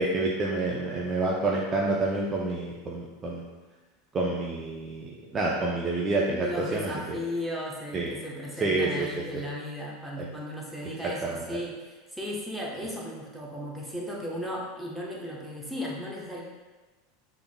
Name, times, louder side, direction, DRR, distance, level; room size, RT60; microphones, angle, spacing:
voice 1, 0.0-3.5 4.1-7.2 7.9-8.1 8.6-9.4 10.2-10.3 11.0-11.4, right 2 dB, 25° right, -3 dB, 0.6 m, -28 dB
voice 2, 6.4-16.4, left 1 dB, 5° right, -4 dB, 1.1 m, -36 dB
6.8 x 3.3 x 2.3 m, 1.2 s
figure-of-eight pair, 80°, 0 cm